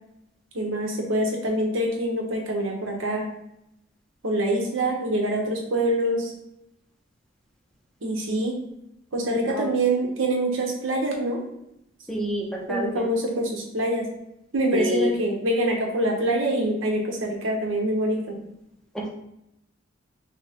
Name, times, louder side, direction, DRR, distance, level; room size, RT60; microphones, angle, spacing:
voice 1, 0.5-3.2 4.2-6.3 8.0-8.6 9.1-11.4 12.7-14.1 14.5-18.4, right 1 dB, 75° right, 0 dB, 1.1 m, -25 dB
voice 2, 12.1-13.1 14.7-15.1 18.9-19.1, equal, 5° left, -2 dB, 0.6 m, -28 dB
5.8 x 2.2 x 3.7 m, 0.82 s
head